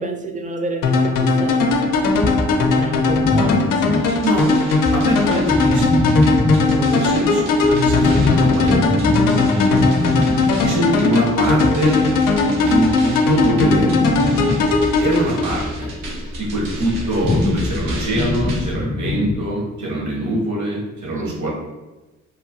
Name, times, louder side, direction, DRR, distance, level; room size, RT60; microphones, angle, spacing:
voice 1, 0.0-2.4 2.7-4.0 9.4-10.0 21.1-21.5, right 1 dB, 25° right, 4 dB, 0.5 m, -29 dB
sound 1, 0.8-15.9, left 3 dB, 80° left, 0.5 m, -18 dB
sound 2, 2.0-4.5 4.8-19.4, left 2 dB, 25° left, 0.5 m, -23 dB
sound 3, 3.9-18.7, right 1 dB, 80° right, 0.8 m, -35 dB
voice 2, 4.9-8.9 10.6-12.0 12.5-13.9 15.0-15.9 16.4-21.5, equal, 60° right, -3 dB, 1.2 m, -23 dB
3.0 x 2.2 x 2.6 m, 1.1 s
supercardioid pair, 50°, 32 cm